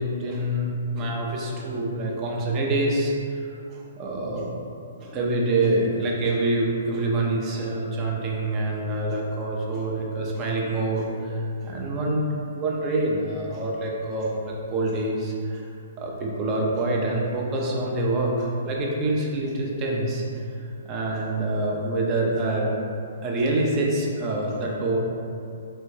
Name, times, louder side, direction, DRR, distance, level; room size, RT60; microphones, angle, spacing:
voice 1, 0.0-4.5 5.0-15.7 16.0-22.7 23.2-25.0, right 2 dB, 30° right, -2 dB, 0.5 m, -26 dB
3.3 x 2.2 x 3.2 m, 2.6 s
figure-of-eight pair, 125°, 0 cm